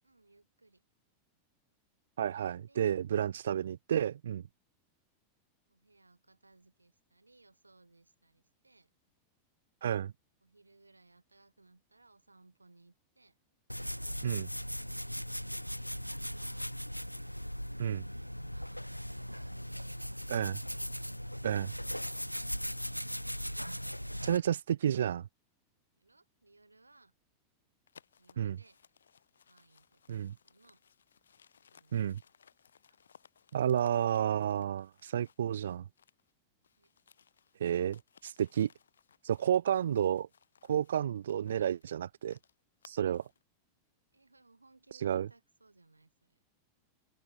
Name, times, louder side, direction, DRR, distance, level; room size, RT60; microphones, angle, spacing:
voice 1, 0.0-0.8 2.5-3.0 5.7-8.9 10.4-13.4 15.5-16.7 17.3-17.7 18.4-20.5 21.5-22.8 26.0-27.1 28.2-28.8 29.5-30.8 31.7-32.4 36.8-36.9 41.5-41.8 42.9-43.1 44.1-46.4, right 2 dB, 80° right, 7.6 m, -64 dB
voice 2, 2.2-4.4 9.8-10.1 14.2-14.5 17.8-18.1 20.3-20.6 21.4-21.7 24.2-25.3 28.4-28.6 30.1-30.3 31.9-32.2 33.5-35.8 37.6-38.7 39.2-40.3 40.7-42.3 42.8-43.2 44.9-45.3, right 9 dB, 65° right, 0.3 m, -31 dB
sound 1, 13.7-24.4, equal, 90° left, 0.7 m, -39 dB
sound 2, 27.9-36.3 36.6-43.4, left 7 dB, 70° left, 1.9 m, -64 dB
open air
figure-of-eight pair, 90°, 0 cm